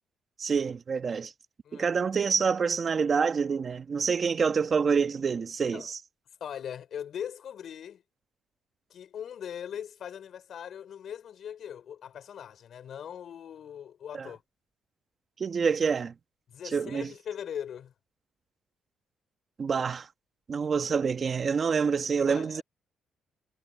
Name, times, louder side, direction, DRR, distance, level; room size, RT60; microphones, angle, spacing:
voice 1, 0.4-1.3 1.7-6.0 14.1-14.3 15.4-16.1 16.6-17.1 19.6-20.1 20.5-22.6, right 5 dB, 45° right, 1.7 m, -27 dB
voice 2, 6.4-8.0 8.9-14.4 16.5-17.9 22.3-22.6, left 9 dB, 65° left, 5.9 m, -40 dB
cardioid pair, 90°, 0 cm